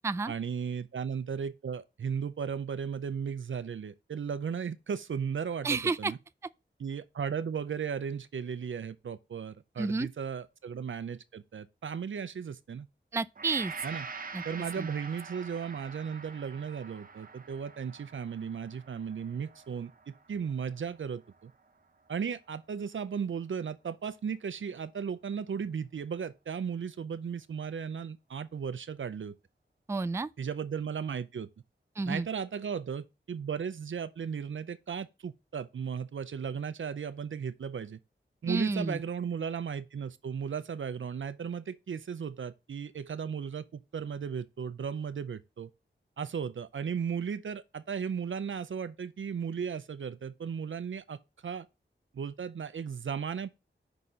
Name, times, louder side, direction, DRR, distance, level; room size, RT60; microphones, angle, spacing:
voice 1, 0.3-6.2 6.8-12.9 13.8-14.1 14.4-21.5 22.1-29.3 30.4-31.5 32.1-38.0 38.4-45.7 46.2-51.7 52.1-53.5, right 7 dB, 80° right, 0.5 m, -36 dB
voice 2, 5.6-6.1 9.8-10.1 13.1-13.7 14.3-14.4 14.8-14.9 29.9-30.3 32.0-32.3 38.5-39.0, right 3 dB, 15° right, 0.3 m, -30 dB
Gong, 13.3-21.7 22.1-22.3, right 4 dB, 45° right, 0.7 m, -46 dB
5.7 x 4.1 x 4.9 m
wide cardioid pair, 75°, 20 cm